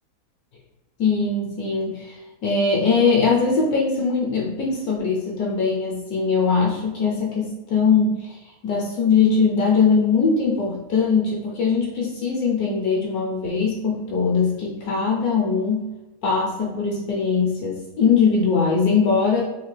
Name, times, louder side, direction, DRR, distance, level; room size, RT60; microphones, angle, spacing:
voice 1, 1.0-2.2 2.4-8.4 8.6-15.9 16.2-19.4, left 5 dB, 70° left, -2 dB, 1.1 m, -21 dB
3.5 x 2.3 x 3.1 m, 1.1 s
omnidirectional pair, 1.8 m